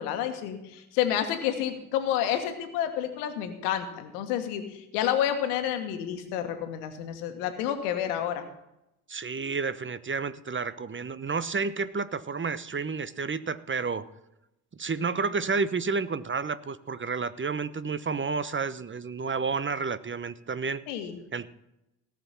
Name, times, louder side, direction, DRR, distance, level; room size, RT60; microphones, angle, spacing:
voice 1, 0.0-8.4 20.9-21.2, left 10 dB, 85° left, 7 dB, 1.4 m, -29 dB
voice 2, 9.1-14.1 14.7-20.8 21.3-21.5, right 4 dB, 25° right, 15 dB, 0.9 m, -30 dB
18.0 x 6.0 x 5.7 m, 0.89 s
hypercardioid pair, 45°, 45 cm